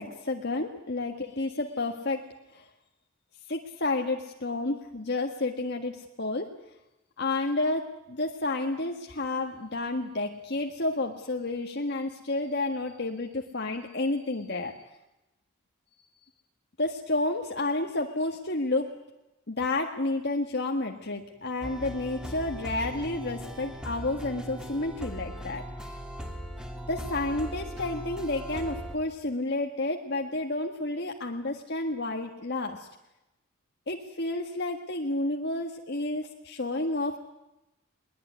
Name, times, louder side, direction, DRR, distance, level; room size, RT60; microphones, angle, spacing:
voice 1, 0.0-2.3 2.5-2.6 3.5-6.5 7.2-14.8 16.8-18.9 19.5-26.0 26.9-32.9 33.9-37.2, left 2 dB, 55° left, 2 dB, 1.7 m, -30 dB
sound 1, 21.6-28.9, equal, 5° right, 2.9 m, -39 dB
21.5 x 21.0 x 9.5 m, 0.92 s
head